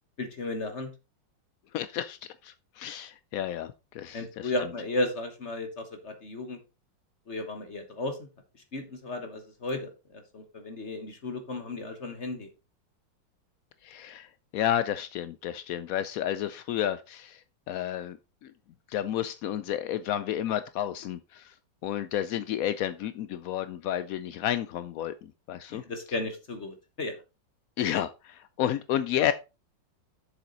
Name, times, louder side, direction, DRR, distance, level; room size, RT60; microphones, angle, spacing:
voice 1, 0.2-0.9 4.1-6.6 7.3-8.3 8.7-12.5 25.7-27.2, left 2 dB, 40° left, 7 dB, 1.4 m, -34 dB
voice 2, 1.7-2.2 2.4-4.5 13.8-14.3 14.5-17.4 17.7-18.2 18.9-21.5 21.8-25.8 27.8-29.3, left 11 dB, 80° left, 13 dB, 0.7 m, -31 dB
7.3 x 7.2 x 3.9 m, 0.29 s
omnidirectional pair, 2.0 m